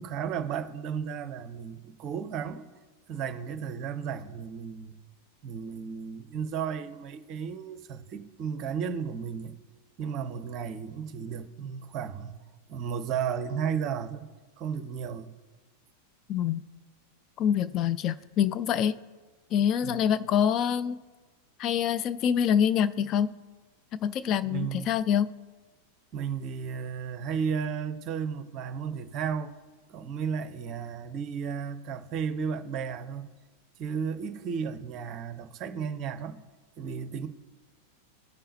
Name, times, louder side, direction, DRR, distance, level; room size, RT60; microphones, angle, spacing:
voice 1, 0.0-2.6 3.1-5.0 5.4-9.6 10.0-12.4 12.7-14.3 14.6-15.3 19.8-20.0 24.4-24.9 26.1-29.5 29.9-33.3 33.8-36.4 36.8-37.3, right 7 dB, 35° right, 0.6 m, -34 dB
voice 2, 16.3-16.6 17.4-19.0 19.5-21.0 21.6-23.3 23.9-25.3, left 9 dB, 35° left, 0.3 m, -26 dB
16.0 x 5.5 x 2.7 m
figure-of-eight pair, 90°, 0 cm